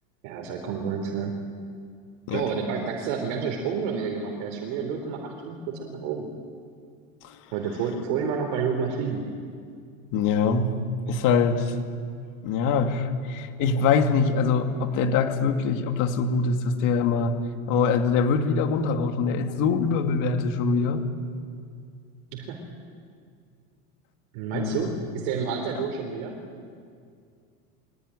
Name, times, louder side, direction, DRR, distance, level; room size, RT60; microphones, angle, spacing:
voice 1, 0.2-1.4 2.3-6.3 7.5-9.3 22.3-22.6 24.3-26.3, right 6 dB, 60° right, 3 dB, 3.4 m, -29 dB
voice 2, 10.1-10.7 11.1-11.7 12.4-17.3 17.7-21.0 24.5-24.8, left 5 dB, 45° left, 6 dB, 2.4 m, -23 dB
23.0 x 17.5 x 9.9 m, 2.2 s
supercardioid pair, 145°, 42 cm